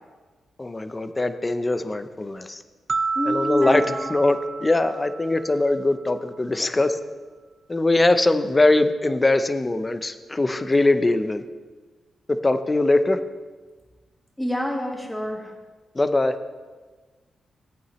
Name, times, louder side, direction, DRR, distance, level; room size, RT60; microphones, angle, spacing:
voice 1, 0.6-2.6 3.3-7.0 7.7-11.4 12.3-13.2 16.0-16.3, left 2 dB, 20° left, 10 dB, 0.7 m, -21 dB
sound 1, 2.9-6.0, right 4 dB, 40° right, 0.4 m, -30 dB
voice 2, 3.2-4.1 14.4-15.5, equal, 5° left, 0 dB, 1.9 m, -27 dB
15.5 x 8.6 x 3.1 m, 1.3 s
cardioid pair, 95°, 0 cm